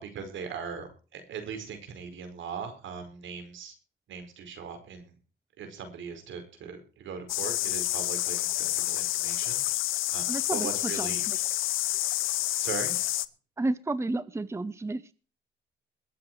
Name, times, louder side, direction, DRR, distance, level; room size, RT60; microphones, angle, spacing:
voice 1, 0.0-3.7 4.1-5.1 5.6-9.6 10.1-11.2 12.6-12.9, right 6 dB, 75° right, 7 dB, 5.1 m, -39 dB
sound 1, 7.3-13.3, left 16 dB, 90° left, 0.8 m, -29 dB
voice 2, 10.3-11.4 13.6-15.1, right 2 dB, 15° right, 16 dB, 0.8 m, -32 dB
22.0 x 7.9 x 4.7 m, 0.37 s
cardioid pair, 90°, 20 cm